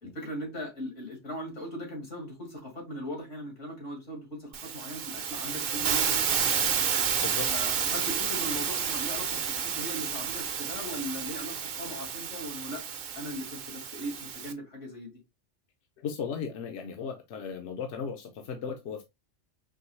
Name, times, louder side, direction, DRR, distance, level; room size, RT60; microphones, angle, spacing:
voice 1, 0.0-6.8 7.5-12.8 13.1-15.1, equal, 90° left, 2.5 m, -39 dB
Hiss, 4.5-14.5, right 7 dB, 55° right, 0.7 m, -30 dB
voice 2, 16.0-19.0, left 6 dB, 70° left, 0.9 m, -36 dB
4.6 x 3.1 x 3.1 m
omnidirectional pair, 1.2 m